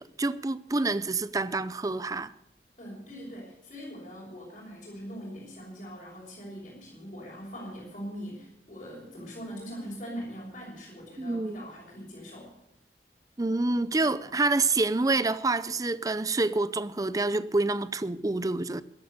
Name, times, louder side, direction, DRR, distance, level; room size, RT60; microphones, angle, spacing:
voice 1, 0.0-2.3 11.2-11.7 13.4-18.8, right 3 dB, 20° right, 0.5 m, -27 dB
voice 2, 2.8-12.5, equal, 40° left, 5.5 m, -42 dB
15.0 x 11.5 x 6.8 m
head